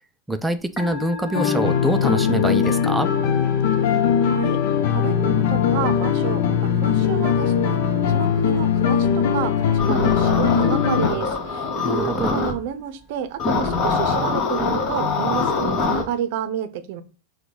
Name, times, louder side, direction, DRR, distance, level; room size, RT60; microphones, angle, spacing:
voice 1, 0.3-3.1 11.8-12.4, right 2 dB, 5° right, 0.3 m, -25 dB
Musical instrument, 0.6-15.3, left 3 dB, 20° left, 2.1 m, -41 dB
sound 1, 1.3-11.1, left 8 dB, 65° left, 0.6 m, -20 dB
voice 2, 4.2-4.6 4.9-7.8 8.1-17.0, right 10 dB, 60° right, 0.5 m, -30 dB
sound 2, 9.8-12.5 13.4-16.0, left 4 dB, 40° left, 1.2 m, -23 dB
4.6 x 2.2 x 3.8 m
hypercardioid pair, 115°, 0 cm